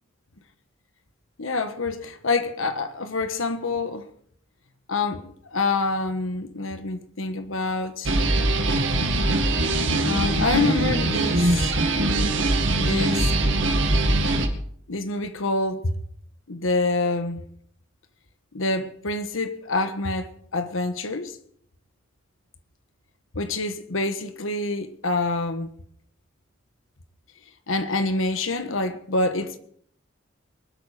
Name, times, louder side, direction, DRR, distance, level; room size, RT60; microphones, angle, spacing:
voice 1, 1.4-4.1 4.9-8.1 10.0-11.7 12.7-13.3 14.9-15.9 16.5-17.4 18.5-21.4 23.3-25.7 27.7-29.6, left 3 dB, 85° left, 1.4 m, -26 dB
sound 1, 8.0-14.5, right 2 dB, 65° right, 2.1 m, -22 dB
24.0 x 8.5 x 5.0 m
head